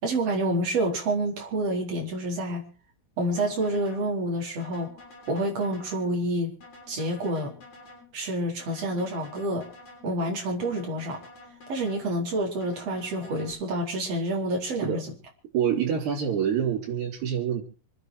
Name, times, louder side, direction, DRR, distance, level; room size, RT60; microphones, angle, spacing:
voice 1, 0.0-2.7 3.2-4.9 5.3-6.5 6.9-7.5 8.1-9.7 10.0-11.2 11.7-15.1, right 1 dB, 35° right, 0 dB, 5.2 m, -28 dB
sound 1, 3.3-4.1 4.6-6.1 6.6-8.1 8.6-10.1 10.6-12.1 12.6-13.5, left 2 dB, 40° left, 7.5 m, -49 dB
voice 2, 15.5-17.6, right 8 dB, 75° right, -4 dB, 5.4 m, -26 dB
27.0 x 9.5 x 4.8 m, 0.36 s
omnidirectional pair, 4.8 m